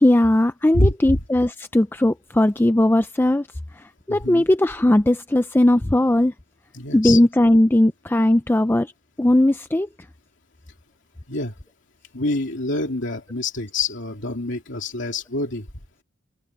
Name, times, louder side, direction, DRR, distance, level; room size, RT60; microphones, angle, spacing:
voice 1, 0.0-3.4 4.1-6.3 6.9-8.9 9.2-9.9, left 1 dB, 10° left, 0.4 m, -18 dB
voice 2, 0.7-1.2 4.1-4.5 6.7-7.2 11.3-11.5 12.1-15.7, left 2 dB, 60° left, 2.9 m, -26 dB
head